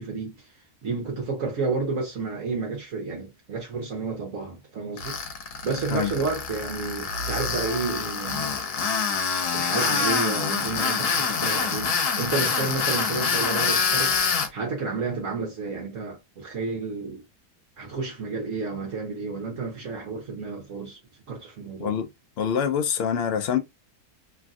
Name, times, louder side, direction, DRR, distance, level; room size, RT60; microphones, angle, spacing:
voice 1, 0.0-8.6 9.5-17.2 17.8-21.0 21.3-21.9, right 4 dB, 60° right, 1.1 m, -31 dB
Tools, 5.0-14.5, left 5 dB, 85° left, 1.3 m, -26 dB
voice 2, 22.4-23.6, left 8 dB, 70° left, 0.5 m, -25 dB
3.1 x 2.5 x 2.3 m
omnidirectional pair, 1.6 m